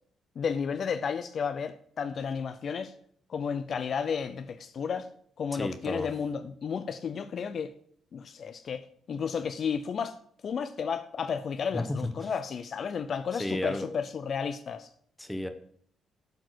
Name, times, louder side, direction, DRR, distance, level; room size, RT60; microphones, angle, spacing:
voice 1, 0.4-2.9 3.3-5.1 5.4-7.7 8.1-10.2 10.4-14.9, left 6 dB, 55° left, 0.5 m, -32 dB
voice 2, 5.5-6.1 11.7-12.1 13.3-13.9 15.2-15.5, left 1 dB, 5° left, 0.9 m, -32 dB
8.1 x 4.4 x 6.2 m
cardioid pair, 90°, 0 cm